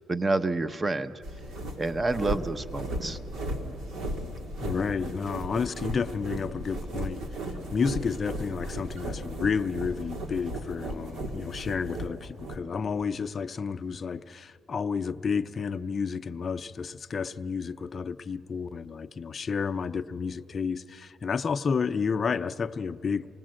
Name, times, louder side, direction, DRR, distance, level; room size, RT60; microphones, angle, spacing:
voice 1, 0.1-1.1 1.8-3.2, right 2 dB, 25° right, 12 dB, 0.8 m, -28 dB
sound 1, 1.2-12.6, right 1 dB, 85° right, 2.1 m, -36 dB
voice 2, 4.6-7.2 7.7-23.3, left 5 dB, 40° left, 11 dB, 0.5 m, -31 dB
26.5 x 19.0 x 7.7 m, 2.8 s
cardioid pair, 90°, 0 cm